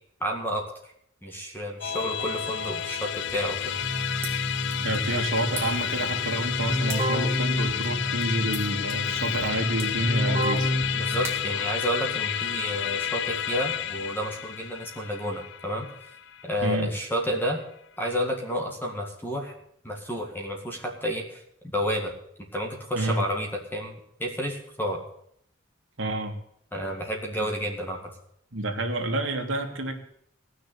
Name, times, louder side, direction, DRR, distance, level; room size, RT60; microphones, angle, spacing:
voice 1, 0.2-0.7 1.2-3.7 10.9-15.9 16.4-17.6 18.0-19.5 19.8-21.4 21.7-22.1 22.5-23.9 24.2-25.0 26.7-28.1, equal, 10° left, 1 dB, 1.9 m, -30 dB
Musical instrument, 1.8-17.3, left 9 dB, 65° left, 0.6 m, -31 dB
Keyboard (musical), 3.3-11.6, equal, 30° right, 3.4 m, -30 dB
sound 1, 3.9-12.5, right 3 dB, 15° right, 3.2 m, -45 dB
voice 2, 4.8-10.7 16.6-16.9 22.9-23.3 26.0-26.3 27.4-27.5 28.5-30.0, right 1 dB, 75° right, 3 dB, 2.2 m, -29 dB
17.0 x 6.4 x 8.5 m, 0.70 s
head